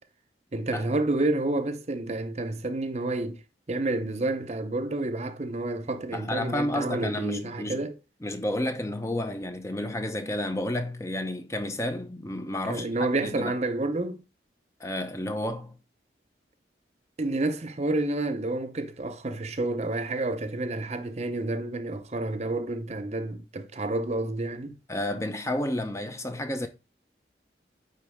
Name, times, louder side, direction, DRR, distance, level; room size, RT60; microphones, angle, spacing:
voice 1, 0.5-3.4 3.7-8.0 12.7-14.2 17.2-24.8, right 2 dB, 35° right, 0.6 m, -29 dB
voice 2, 6.1-7.8 8.2-12.9 13.2-13.5 14.8-15.8 24.9-26.7, left 1 dB, 15° left, 0.6 m, -31 dB
9.3 x 4.0 x 3.5 m
head